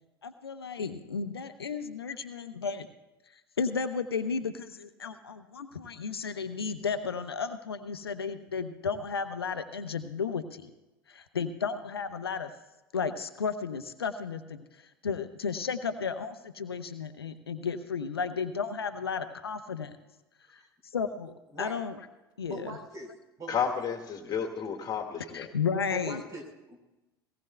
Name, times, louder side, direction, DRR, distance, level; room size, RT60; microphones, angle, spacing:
voice 1, 0.2-2.9 3.6-10.7 11.1-12.5 12.9-20.0 20.5-20.6 20.9-22.0 22.4-22.7 25.3-26.2, left 5 dB, 80° left, 10 dB, 0.7 m, -33 dB
voice 2, 22.4-23.1 23.4-23.7 25.9-26.8, right 1 dB, 25° right, 2 dB, 3.9 m, -41 dB
voice 3, 23.5-25.5, left 7 dB, 30° left, 3 dB, 1.8 m, -32 dB
18.5 x 18.0 x 2.2 m, 1.0 s
figure-of-eight pair, 75°, 13 cm